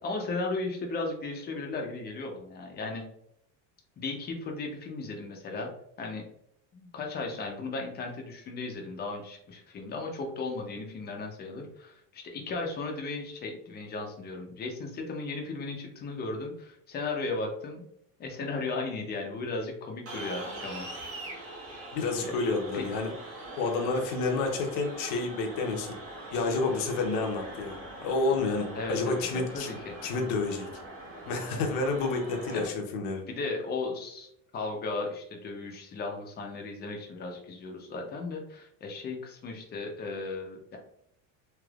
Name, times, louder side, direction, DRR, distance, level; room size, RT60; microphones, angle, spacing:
voice 1, 0.0-3.0 4.0-5.7 6.0-6.2 6.7-17.8 18.2-20.9 22.2-22.3 22.7-22.9 28.7-29.9 32.5-32.7 33.3-34.3 34.5-40.8, left 3 dB, 25° left, 2 dB, 0.6 m, -36 dB
sound 1, 20.1-32.7, right 1 dB, 35° right, 1.0 m, -42 dB
voice 2, 21.9-23.1 23.6-25.9 26.3-29.7 30.0-30.7 31.3-33.2, left 3 dB, 60° left, 3 dB, 0.8 m, -29 dB
3.3 x 2.9 x 2.3 m, 0.72 s
cardioid pair, 155°, 39 cm